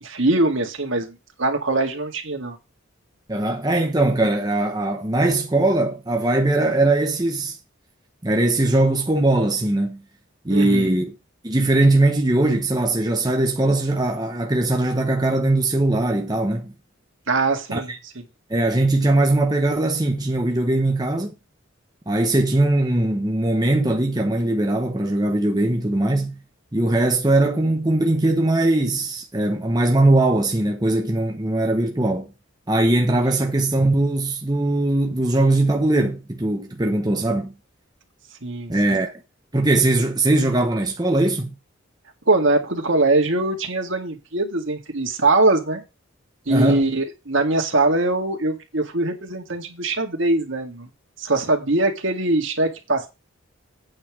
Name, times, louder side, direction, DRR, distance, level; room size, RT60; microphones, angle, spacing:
voice 1, 0.0-2.6 10.5-11.0 17.3-17.9 38.4-39.0 42.3-45.8 46.5-50.9 51.2-53.1, right 2 dB, 65° right, 2.1 m, -22 dB
voice 2, 3.3-7.6 8.2-10.0 10.4-11.1 11.4-16.7 17.7-18.0 18.5-21.3 22.1-26.3 26.7-32.3 32.7-37.5 38.7-39.2 39.5-41.5 46.5-46.8, right 2 dB, 20° right, 0.9 m, -20 dB
8.9 x 5.7 x 6.2 m
head